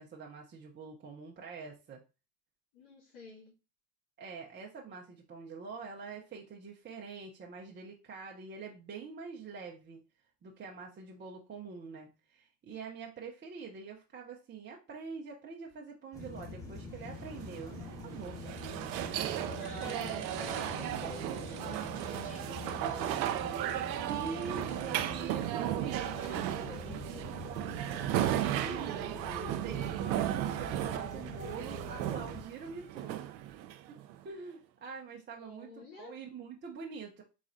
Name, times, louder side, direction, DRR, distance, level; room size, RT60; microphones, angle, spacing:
voice 1, 0.0-2.0 4.2-10.0 10.4-18.4 19.1-20.2 24.1-26.0 28.1-33.2 33.8-34.0 34.2-37.2, right 5 dB, 20° right, -1 dB, 0.7 m, -45 dB
voice 2, 2.7-3.5 19.3-23.4 25.4-27.4 35.4-36.2, left 3 dB, 65° left, -7 dB, 2.4 m, -50 dB
sound 1, 16.1-32.4, left 3 dB, 5° left, 1.4 m, -45 dB
sound 2, 17.2-34.2, right 12 dB, 90° right, 0.6 m, -35 dB
sound 3, 18.5-25.0, right 9 dB, 45° right, 0.9 m, -51 dB
4.1 x 4.0 x 2.5 m, 0.31 s
hypercardioid pair, 95°, 50 cm